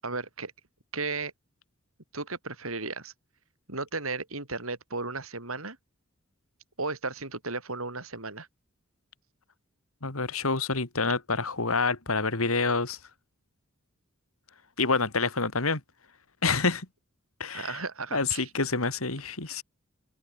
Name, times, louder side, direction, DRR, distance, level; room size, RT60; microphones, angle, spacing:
voice 1, 0.0-0.5 0.9-1.3 2.1-3.1 3.7-5.8 6.8-8.5 17.5-18.5, right 3 dB, 80° right, 7.2 m, -34 dB
voice 2, 10.0-13.0 14.8-15.8 16.4-16.9 17.4-17.8 18.1-19.6, left 4 dB, 90° left, 2.8 m, -27 dB
open air
head